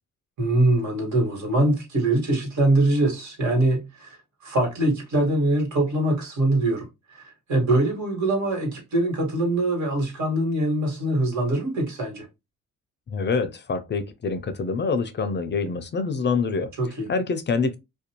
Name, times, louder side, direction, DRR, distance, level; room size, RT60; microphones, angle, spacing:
voice 1, 0.4-4.2 4.4-12.3 16.8-17.1, right 1 dB, 70° right, 1.6 m, -23 dB
voice 2, 13.1-16.7 17.1-17.8, left 4 dB, 35° left, 0.5 m, -26 dB
2.5 x 2.2 x 2.9 m
cardioid pair, 90°, 30 cm